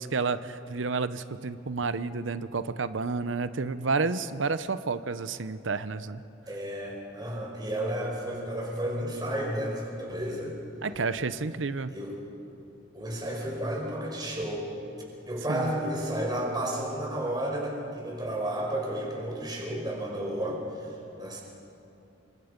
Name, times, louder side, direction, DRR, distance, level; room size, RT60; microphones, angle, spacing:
voice 1, 0.0-6.2 10.8-11.9 15.5-15.7, right 4 dB, 85° right, 13 dB, 0.8 m, -30 dB
voice 2, 6.5-10.5 11.9-12.1 12.9-14.6 15.3-21.4, right 1 dB, 25° right, -2 dB, 5.1 m, -32 dB
27.5 x 24.5 x 5.3 m, 2.7 s
head